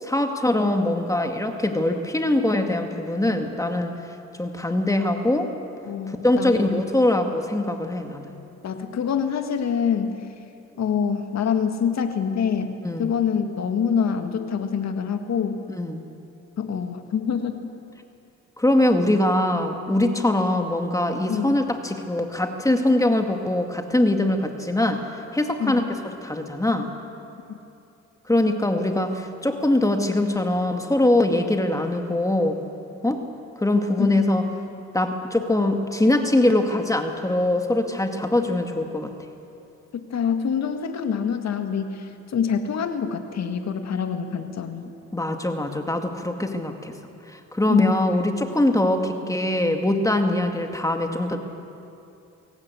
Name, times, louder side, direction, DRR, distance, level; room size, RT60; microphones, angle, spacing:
voice 1, 0.0-3.9 4.4-5.5 6.1-8.3 12.8-13.1 15.7-16.0 18.6-25.0 25.3-25.8 26.2-26.9 28.3-32.6 33.0-33.2 33.6-34.5 34.9-39.1 45.1-46.9 47.3-51.4, left 1 dB, 10° left, 5 dB, 2.1 m, -22 dB
voice 2, 5.8-6.8 8.6-10.2 10.8-15.6 16.6-17.6 21.3-21.6 25.6-25.9 27.5-27.6 34.0-34.1 40.1-44.9 47.7-47.9, left 7 dB, 60° left, 6 dB, 2.1 m, -26 dB
23.0 x 18.0 x 8.4 m, 2.7 s
cardioid pair, 90°, 30 cm